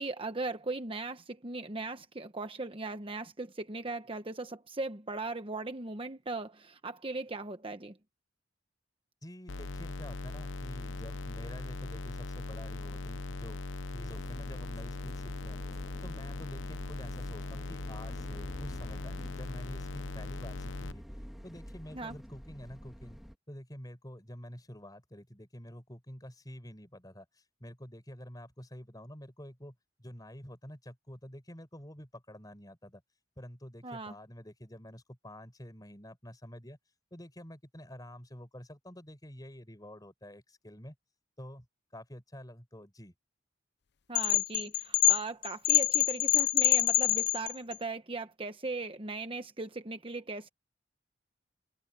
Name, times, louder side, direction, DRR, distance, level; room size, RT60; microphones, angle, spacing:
voice 1, 0.0-8.0 21.9-22.2 33.8-34.1 44.1-50.5, right 3 dB, 30° right, 1.1 m, -38 dB
voice 2, 9.2-13.6 13.9-15.6 16.0-21.0 21.4-23.2 23.5-33.0 33.4-36.8 37.1-40.9 41.4-41.6 41.9-43.1, equal, 20° left, 4.8 m, -48 dB
sound 1, 9.5-20.9, left 2 dB, 80° left, 0.9 m, -39 dB
sound 2, 14.0-23.4, equal, ahead, 2.2 m, -49 dB
sound 3, 44.2-47.7, left 19 dB, 60° left, 0.6 m, -25 dB
head